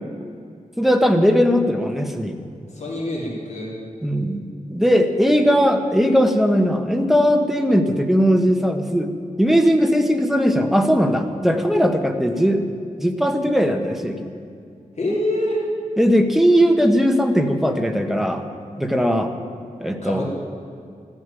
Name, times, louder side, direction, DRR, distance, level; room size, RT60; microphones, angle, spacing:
voice 1, 0.8-2.4 4.0-4.4 4.7-9.1 9.4-12.6 13.0-14.3 16.0-18.4 18.8-19.3 19.8-20.3, equal, ahead, 5 dB, 1.3 m, -18 dB
voice 2, 2.7-3.7 15.0-15.6 20.0-20.3, left 1 dB, 55° left, -3 dB, 3.3 m, -25 dB
14.5 x 10.0 x 9.2 m, 2.4 s
wide cardioid pair, 110°, 14 cm